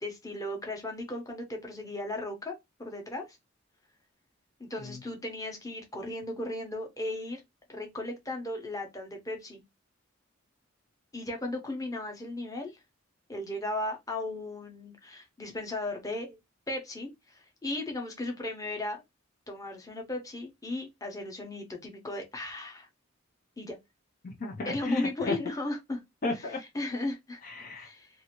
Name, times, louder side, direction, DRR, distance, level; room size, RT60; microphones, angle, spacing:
voice 1, 0.0-3.2 4.6-7.4 7.7-9.6 11.1-12.7 13.3-16.4 16.7-19.0 19.5-22.9 23.6-23.8 24.6-26.0 26.7-27.4 27.8-28.1, left 2 dB, 15° left, 0.8 m, -36 dB
voice 2, 24.2-25.4 26.2-26.6 27.4-27.9, left 2 dB, 45° left, 0.5 m, -33 dB
2.7 x 2.5 x 2.9 m
head